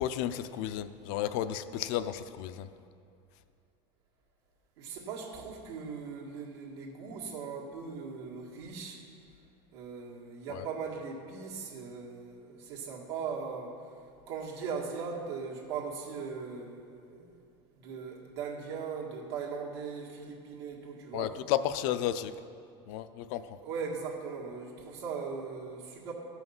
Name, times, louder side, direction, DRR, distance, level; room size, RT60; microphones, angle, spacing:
voice 1, 0.0-2.7 10.5-10.7 21.1-22.3 22.9-23.6, left 11 dB, 60° left, 11 dB, 0.5 m, -32 dB
voice 2, 4.8-9.0 9.7-13.8 14.3-17.4 17.7-21.4 23.6-26.1, right 5 dB, 85° right, -2 dB, 1.7 m, -39 dB
13.5 x 5.8 x 5.5 m, 2.5 s
supercardioid pair, 155°, 13 cm